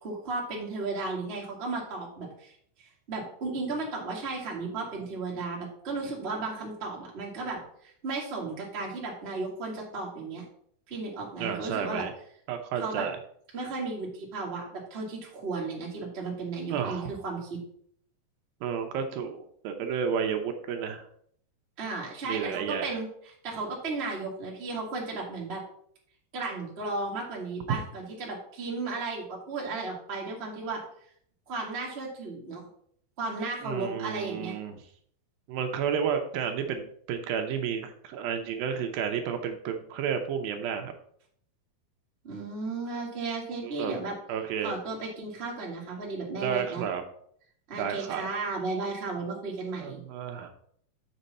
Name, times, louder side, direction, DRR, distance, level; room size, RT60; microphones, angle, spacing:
voice 1, 0.0-10.4 10.9-12.1 12.8-13.1 13.5-17.6 21.8-25.6 26.3-30.8 31.5-32.6 33.2-34.5 42.2-44.1 44.6-46.8 47.7-50.0, right 3 dB, 25° right, -2 dB, 1.3 m, -34 dB
voice 2, 11.4-12.1 12.5-13.2 16.7-17.1 18.6-21.0 22.2-23.0 33.6-34.8 35.5-40.9 43.6-44.0 44.3-44.7 46.4-47.0 47.8-48.3 49.8-50.5, right 7 dB, 80° right, 5 dB, 2.5 m, -31 dB
7.1 x 6.6 x 4.2 m, 0.63 s
omnidirectional pair, 4.3 m